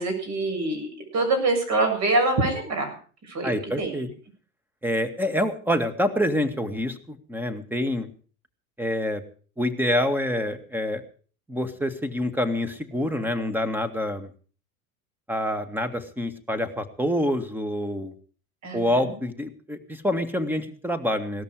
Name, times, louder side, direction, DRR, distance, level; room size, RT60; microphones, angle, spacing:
voice 1, 0.0-2.9 3.3-4.0 18.6-19.1, right 2 dB, 40° right, 4 dB, 7.3 m, -25 dB
voice 2, 3.4-4.1 4.8-8.1 8.8-9.2 9.6-11.0 11.5-14.3 15.3-18.1 18.7-21.4, left 1 dB, 5° right, 8 dB, 2.0 m, -26 dB
18.0 x 13.5 x 4.9 m, 0.41 s
hypercardioid pair, 90°, 44 cm